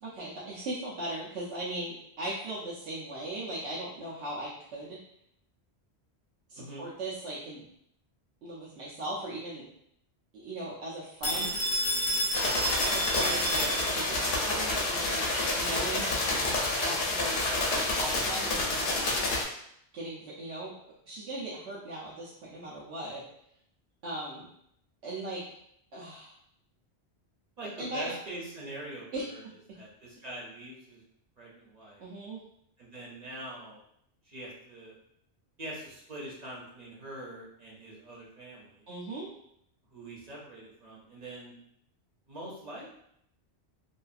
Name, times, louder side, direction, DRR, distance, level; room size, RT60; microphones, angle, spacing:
voice 1, 0.0-5.0 6.5-7.7 8.4-9.7 10.3-11.5 12.8-15.3 15.6-16.2 16.8-17.5 17.9-18.9 19.9-20.7 21.1-23.2 24.0-24.5 25.0-25.4 25.9-26.3 27.6-28.1 29.1-29.2 32.0-32.4 38.9-39.3, right 1 dB, 90° right, -7 dB, 0.9 m, -38 dB
voice 2, 6.6-6.9 11.2-11.5 13.5-13.7 27.6-29.1 29.3-29.4 29.7-31.0 31.4-32.0 32.8-33.8 34.3-34.9 35.6-38.8 39.9-41.5 42.3-42.8, right 1 dB, 45° right, -5 dB, 0.7 m, -43 dB
Telephone, 11.2-14.2, equal, 40° left, 0.7 m, -30 dB
sound 1, 12.3-19.4, left 2 dB, 70° left, 0.8 m, -29 dB
2.7 x 2.3 x 2.4 m, 0.72 s
omnidirectional pair, 1.1 m